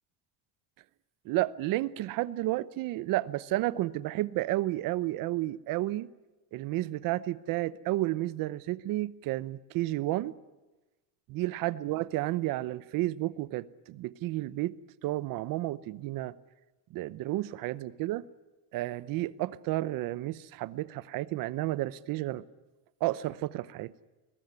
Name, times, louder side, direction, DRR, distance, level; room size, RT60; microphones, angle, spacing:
voice 1, 1.2-6.1 6.5-10.4 11.3-16.3 16.9-18.3 18.7-22.4 23.0-23.9, right 16 dB, 50° right, 0.8 m, -32 dB
22.5 x 20.0 x 9.7 m
cardioid pair, 180°, 43 cm